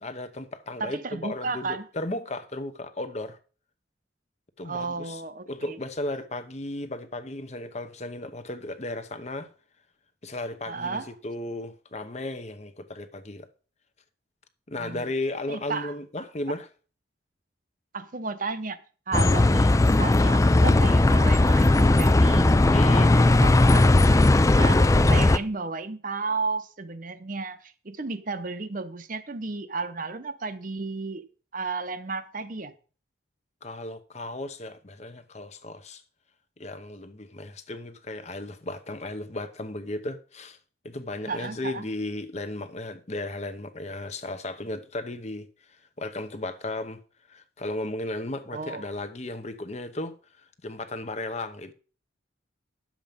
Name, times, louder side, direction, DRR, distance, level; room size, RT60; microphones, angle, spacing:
voice 1, 0.0-3.4 4.6-5.2 5.5-9.5 10.2-13.5 14.7-16.7 22.7-23.1 33.6-36.0 36.6-40.6 40.8-45.5 46.0-47.0 47.3-51.7, left 2 dB, 35° left, 0.9 m, -35 dB
voice 2, 0.8-1.8 4.6-5.8 10.7-11.1 14.7-15.0 15.5-15.9 17.9-18.8 19.1-24.0 24.5-31.2 31.5-32.7 41.3-41.9 48.5-48.8, right 4 dB, 45° right, 0.8 m, -33 dB
Bus, 19.1-25.4, left 2 dB, 15° left, 0.4 m, -18 dB
10.5 x 7.4 x 5.2 m
head